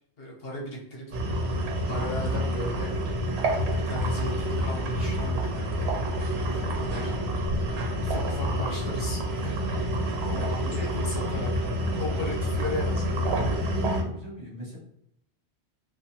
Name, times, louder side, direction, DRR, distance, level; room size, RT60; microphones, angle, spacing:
voice 1, 0.2-1.5 1.9-2.9 3.9-5.9 6.5-7.1 8.0-9.6 10.3-11.5 12.0-13.3, left 1 dB, 65° left, -2 dB, 0.9 m, -36 dB
sound 1, 1.1-14.0, equal, 70° right, 0.8 m, -28 dB
voice 2, 10.3-10.9 13.3-14.8, left 1 dB, 35° right, -7 dB, 1.3 m, -41 dB
2.6 x 2.3 x 2.7 m, 0.73 s
omnidirectional pair, 1.1 m